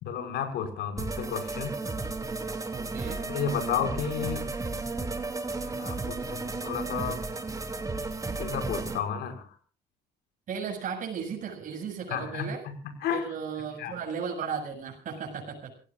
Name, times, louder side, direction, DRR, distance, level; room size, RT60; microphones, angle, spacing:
voice 1, 0.1-1.7 3.3-4.4 5.7-7.2 8.4-9.4 12.1-12.8 13.0-13.3 13.8-13.9, left 7 dB, 75° left, 6 dB, 5.9 m, -32 dB
sound 1, 1.0-9.0, right 3 dB, 20° right, 3.0 m, -33 dB
voice 2, 2.7-3.2 10.5-12.6 13.1-15.7, right 6 dB, 50° right, 1 dB, 7.8 m, -35 dB
28.5 x 17.5 x 2.5 m, 0.40 s
cardioid pair, 110°, 17 cm